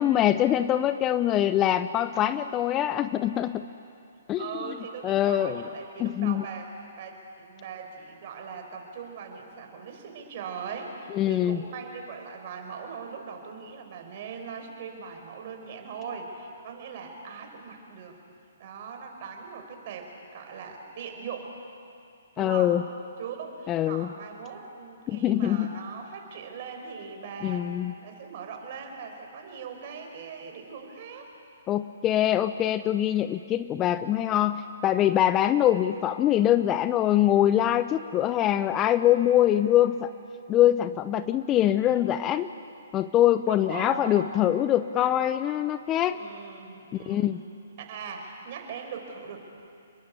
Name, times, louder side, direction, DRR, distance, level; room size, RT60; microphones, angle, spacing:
voice 1, 0.0-3.7 4.3-4.5 5.0-5.6 6.0-6.4 11.1-11.6 22.4-22.8 23.7-24.1 25.1-25.7 27.4-27.9 31.7-40.1 40.5-42.5 42.9-46.2 47.1-47.4, left 12 dB, 20° left, 12 dB, 0.7 m, -23 dB
voice 2, 4.4-6.7 7.0-18.2 18.6-21.5 22.4-22.7 23.2-31.3 43.5-44.3 46.1-47.3 47.9-49.4, right 6 dB, 45° right, 3 dB, 5.1 m, -40 dB
29.0 x 21.5 x 8.5 m, 2.5 s
figure-of-eight pair, 130°, 0 cm